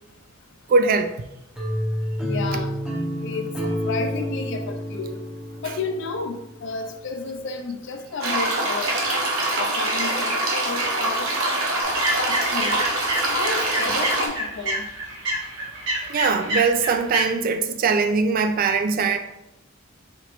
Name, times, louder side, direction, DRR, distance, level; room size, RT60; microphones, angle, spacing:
voice 1, 0.7-1.1 5.6-5.8 16.1-19.2, right 4 dB, 40° right, 0.3 m, -21 dB
sound 1, 1.6-6.5, equal, 5° right, 0.6 m, -29 dB
voice 2, 2.2-2.7 3.2-5.2 5.6-8.9 9.5-11.3 12.1-12.8 13.3-14.9, left 4 dB, 60° left, 0.4 m, -32 dB
sound 2, 8.2-14.3, right 2 dB, 75° right, 1.0 m, -24 dB
sound 3, 11.8-17.2, right 1 dB, 60° right, 1.3 m, -28 dB
4.3 x 2.9 x 3.0 m
head